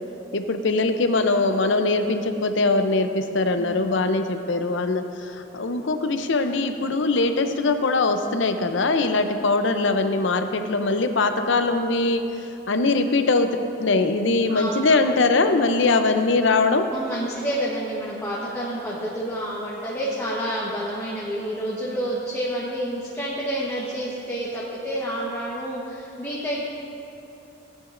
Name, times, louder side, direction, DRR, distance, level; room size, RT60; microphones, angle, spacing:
voice 1, 0.3-12.2 12.7-16.9, left 3 dB, 65° left, 7 dB, 0.6 m, -22 dB
voice 2, 3.6-3.9 10.6-10.7 14.5-14.9 16.9-26.6, right 1 dB, 15° left, -7 dB, 1.2 m, -29 dB
17.5 x 9.9 x 2.6 m, 2.9 s
head